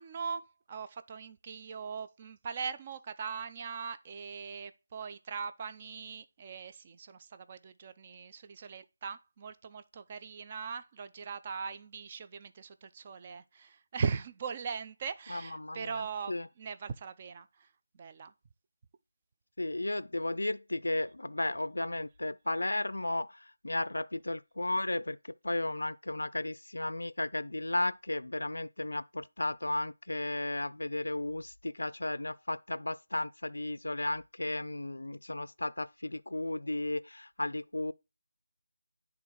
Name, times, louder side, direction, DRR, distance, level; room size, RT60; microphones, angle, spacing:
voice 1, 0.0-17.7 17.9-18.3, right 5 dB, 25° right, 0.5 m, -40 dB
voice 2, 15.3-16.0 16.3-16.5 19.6-37.9, left 2 dB, 85° left, 0.4 m, -34 dB
9.7 x 3.6 x 4.6 m
figure-of-eight pair, 170°, 0 cm